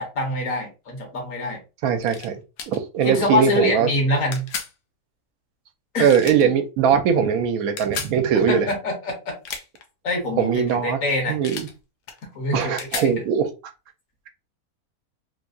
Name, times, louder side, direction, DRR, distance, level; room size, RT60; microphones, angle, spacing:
voice 1, 0.0-1.6 3.0-4.5 5.9-6.1 8.5-9.1 10.0-11.4 12.3-13.1, left 1 dB, 65° left, 1.4 m, -25 dB
voice 2, 1.8-3.9 6.0-8.7 10.4-11.0 11.3-11.7 12.5-13.5, right 7 dB, 75° right, 1.0 m, -21 dB
sound 1, 2.0-2.3 2.6-2.8 4.3-4.7 6.1-6.5 7.8-8.2 9.3-9.8 11.4-11.7 12.1-13.1, left 6 dB, 85° left, 1.2 m, -33 dB
3.3 x 2.7 x 2.5 m
omnidirectional pair, 1.6 m